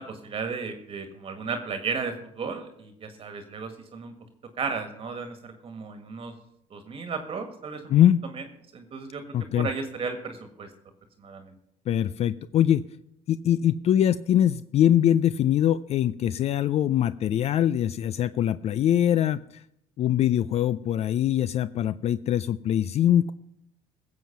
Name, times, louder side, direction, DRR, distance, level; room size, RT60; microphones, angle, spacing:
voice 1, 0.0-4.1 4.6-6.3 6.7-7.9 8.7-9.2 9.5-10.7 11.2-11.5, right 5 dB, 40° right, 7 dB, 1.6 m, -34 dB
voice 2, 7.9-8.2 9.3-9.7 11.9-12.9 13.3-19.6 20.0-23.3, left 11 dB, 45° left, 16 dB, 0.4 m, -23 dB
16.0 x 7.6 x 5.8 m, 0.75 s
supercardioid pair, 100°, 14 cm